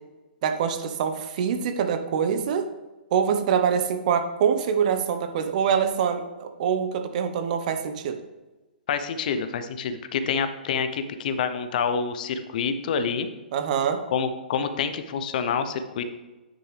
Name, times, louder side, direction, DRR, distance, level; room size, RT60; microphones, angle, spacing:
voice 1, 0.4-2.6 3.1-8.2 13.5-14.0, right 7 dB, 50° right, 8 dB, 1.0 m, -24 dB
voice 2, 8.9-13.3 14.1-16.0, left 6 dB, 55° left, 10 dB, 0.7 m, -27 dB
9.7 x 6.1 x 3.3 m, 1.1 s
hypercardioid pair, 125°, 5 cm